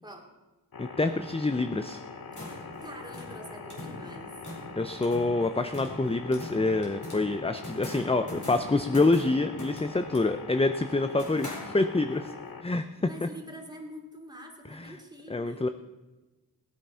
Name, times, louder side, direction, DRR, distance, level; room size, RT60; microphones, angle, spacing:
sound 1, 0.7-12.6, left 5 dB, 70° left, 1.1 m, -43 dB
voice 1, 0.8-2.0 4.8-12.3 12.6-12.9 13.2-13.3 14.7-14.9 15.3-15.7, left 2 dB, 15° left, 8 dB, 0.5 m, -26 dB
sound 2, 2.1-12.2, left 1 dB, 55° left, 4.6 m, -43 dB
voice 2, 2.3-4.4 13.0-15.7, equal, 10° right, 0 dB, 2.8 m, -46 dB
19.0 x 9.1 x 5.6 m, 1.2 s
wide cardioid pair, 65°, 36 cm